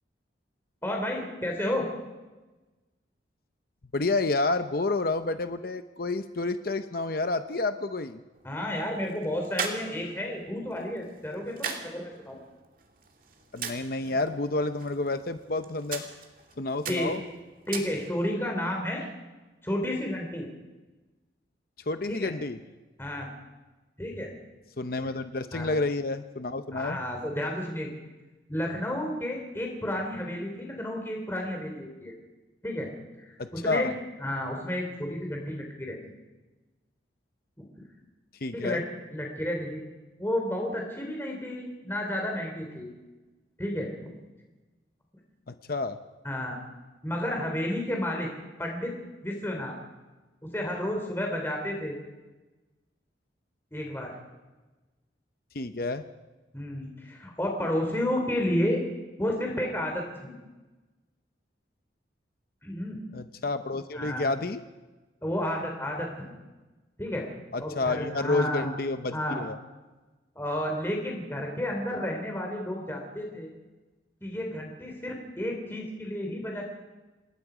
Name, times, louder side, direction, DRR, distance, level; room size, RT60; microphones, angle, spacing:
voice 1, 0.8-1.8 8.4-12.4 16.9-17.1 17.7-19.0 19.6-20.5 22.1-22.3 23.0-23.3 24.0-24.3 25.5-25.7 26.7-27.9 28.5-32.1 32.6-32.9 33.2-33.9 34.2-36.0 38.5-38.8 39.1-39.8 40.2-42.9 43.6-44.1 46.2-46.6 47.0-48.3 48.6-48.9 49.2-49.7 50.4-52.0 53.7-54.1 56.5-58.8 59.2-60.3 62.6-63.0 63.9-64.3 65.2-66.3 67.0-67.2 67.6-68.8 69.1-69.5 70.3-73.5 74.2-76.6, left 1 dB, 15° left, 1 dB, 3.2 m, -31 dB
voice 2, 3.9-8.2 13.5-16.0 16.6-17.2 21.9-22.6 24.8-27.0 33.4-33.9 38.4-38.8 45.5-46.0 55.5-56.0 63.1-64.6 67.5-69.6, left 3 dB, 55° left, 9 dB, 0.8 m, -29 dB
sound 1, 8.3-18.4, right 5 dB, 50° right, 2.6 m, -41 dB
27.5 x 20.0 x 5.0 m, 1.2 s
head